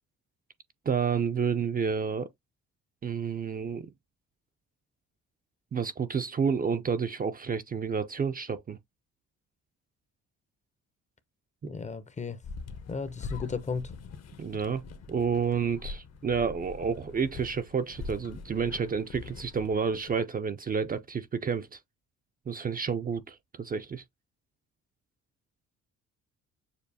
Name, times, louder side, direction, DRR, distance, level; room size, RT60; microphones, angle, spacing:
voice 1, 0.9-2.3 3.0-3.9 5.7-8.8 11.6-11.7 14.4-14.8 15.1-21.8 22.5-24.0, right 6 dB, 30° right, 0.4 m, -30 dB
voice 2, 11.6-12.4 12.9-13.9, left 5 dB, 25° left, 0.6 m, -34 dB
sound 1, 12.4-20.2, left 4 dB, 60° left, 0.9 m, -43 dB
6.7 x 2.4 x 2.7 m
cardioid pair, 90°, 30 cm